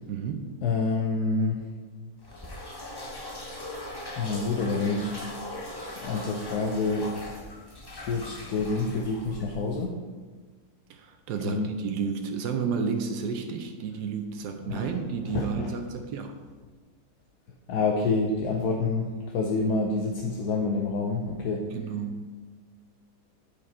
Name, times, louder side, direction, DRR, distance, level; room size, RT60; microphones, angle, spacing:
voice 1, 0.1-0.5 10.9-16.3 21.7-22.3, right 6 dB, 85° right, 5 dB, 1.2 m, -31 dB
voice 2, 0.6-1.6 4.2-5.1 6.0-7.1 7.9-10.0 11.4-11.7 14.6-14.9 15.3-15.7 17.7-21.7, left 3 dB, 75° left, 1 dB, 1.2 m, -27 dB
sound 1, 2.2-9.9, left 1 dB, 20° left, 0.6 m, -40 dB
8.9 x 5.0 x 4.2 m, 1.4 s
omnidirectional pair, 1.7 m